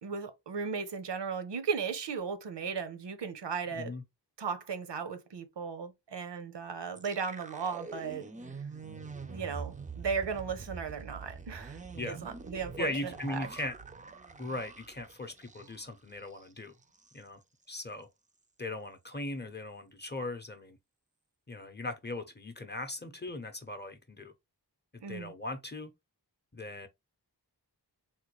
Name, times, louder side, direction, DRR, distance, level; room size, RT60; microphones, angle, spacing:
voice 1, 0.0-3.9 4.4-8.3 9.3-11.8 12.0-13.5 25.0-25.3, right 6 dB, 80° right, 0.7 m, -36 dB
voice 2, 3.7-4.0 11.9-12.2 12.8-13.7 14.4-16.7 17.1-17.4 17.7-18.1 18.6-20.8 21.5-24.3 25.1-25.9 26.5-26.9, left 2 dB, 25° left, 0.7 m, -39 dB
sound 1, 6.9-16.0 16.3-16.4 16.8-17.2, right 5 dB, 20° right, 0.4 m, -45 dB
3.7 x 2.2 x 3.0 m
wide cardioid pair, 45°, 41 cm